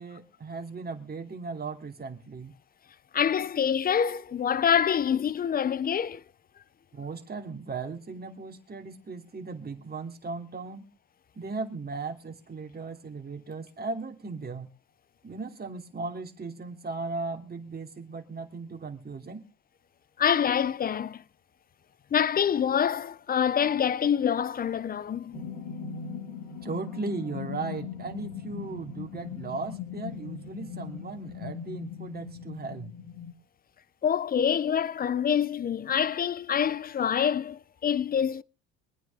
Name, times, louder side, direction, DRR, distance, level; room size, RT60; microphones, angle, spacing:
voice 1, 0.0-2.5 6.9-10.9 11.4-14.7 15.2-19.4 26.6-32.9, right 4 dB, 25° right, 2.9 m, -37 dB
voice 2, 3.1-6.2 20.2-21.2 22.1-25.4 34.0-38.4, left 8 dB, 25° left, 0.6 m, -26 dB
sound 1, 25.3-33.3, left 7 dB, 85° left, 4.6 m, -39 dB
24.5 x 9.2 x 3.5 m
supercardioid pair, 80°, 35 cm